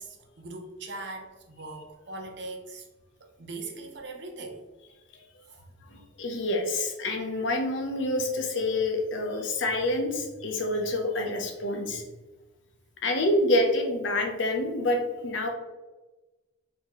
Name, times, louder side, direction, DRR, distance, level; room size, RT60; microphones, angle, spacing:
voice 1, 0.0-2.9 3.4-4.6, right 2 dB, 60° right, 3 dB, 0.6 m, -40 dB
voice 2, 5.9-12.0 13.0-15.5, left 1 dB, 70° left, 3 dB, 0.7 m, -27 dB
4.3 x 2.8 x 2.9 m, 1.2 s
head